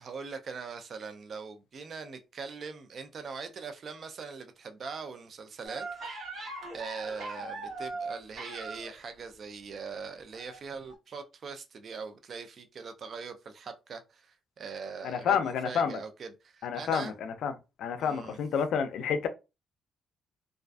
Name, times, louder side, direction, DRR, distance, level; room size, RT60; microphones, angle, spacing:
voice 1, 0.0-5.9 6.7-17.1 18.0-18.4, right 5 dB, 50° right, 0.4 m, -41 dB
sound 1, 5.6-9.0 10.3-10.6 10.9-11.0, right 3 dB, 70° right, 1.0 m, -39 dB
voice 2, 15.0-16.0 16.6-17.5 17.8-19.3, left 7 dB, 75° left, 0.4 m, -29 dB
2.4 x 2.2 x 2.4 m
cardioid pair, 90°, 0 cm